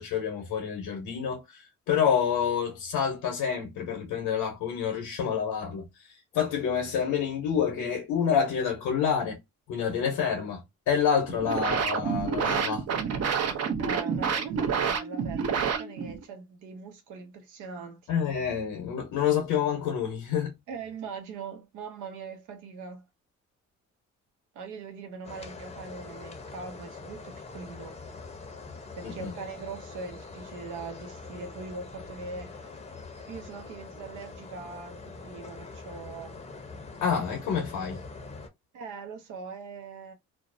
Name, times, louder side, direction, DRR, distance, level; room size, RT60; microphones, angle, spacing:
voice 1, 0.0-5.9 6.3-9.4 9.7-12.8 18.1-20.5 29.0-29.3 37.0-38.0, left 7 dB, 90° left, 0.9 m, -28 dB
sound 1, 11.2-16.2, right 6 dB, 55° right, 0.6 m, -28 dB
voice 2, 13.8-18.1 20.7-23.0 24.5-28.0 28.9-32.7 33.3-36.4 38.7-40.1, right 4 dB, 90° right, 0.8 m, -41 dB
sound 2, 25.2-38.5, left 3 dB, 20° left, 0.6 m, -44 dB
2.5 x 2.0 x 2.5 m
cardioid pair, 90°, 30 cm